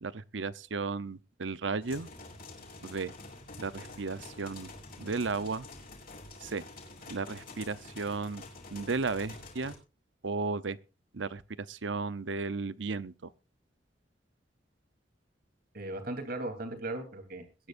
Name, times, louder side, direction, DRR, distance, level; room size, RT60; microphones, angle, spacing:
voice 1, 0.0-2.1 2.8-3.1 3.6-4.7 5.0-5.7 6.4-6.6 7.1-8.4 8.7-9.7 10.2-10.8 11.1-11.4 11.7-13.1, right 4 dB, 85° right, 0.8 m, -34 dB
sound 1, 1.8-9.8, left 2 dB, 55° left, 6.6 m, -48 dB
voice 2, 15.7-17.7, right 2 dB, 55° right, 3.4 m, -38 dB
22.5 x 10.5 x 2.6 m
head